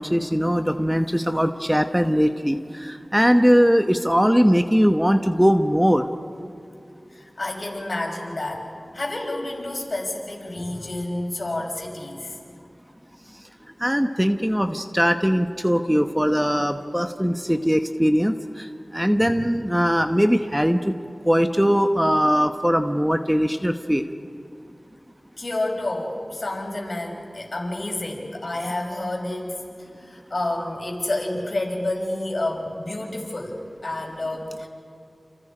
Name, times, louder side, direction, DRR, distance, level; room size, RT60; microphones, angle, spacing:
voice 1, 0.0-6.1 13.8-20.9 21.2-24.0, equal, 5° right, 7 dB, 1.1 m, -20 dB
voice 2, 7.1-8.7 8.9-12.4 19.2-19.5 25.4-34.7, left 2 dB, 60° left, 0 dB, 5.6 m, -29 dB
30.0 x 28.5 x 5.1 m, 2.5 s
wide cardioid pair, 50°, 0 cm